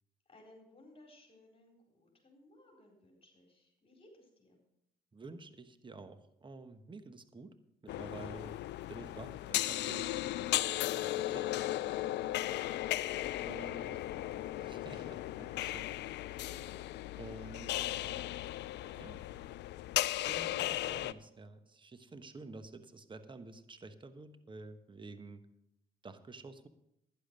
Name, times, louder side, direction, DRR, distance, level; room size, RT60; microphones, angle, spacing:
voice 1, 0.3-4.6 16.4-16.9, left 2 dB, 30° left, 0 dB, 4.1 m, -60 dB
voice 2, 5.1-7.6 7.8-10.2 11.0-11.5 13.4-14.0 14.5-15.9 16.3-16.6 17.2-18.3 18.9-19.2 20.1-25.5 26.0-26.7, right 3 dB, 25° right, 11 dB, 1.1 m, -50 dB
sound 1, 7.9-21.1, left 15 dB, 65° left, 0.4 m, -36 dB
11.5 x 10.5 x 5.3 m, 0.79 s
supercardioid pair, 65°, 19 cm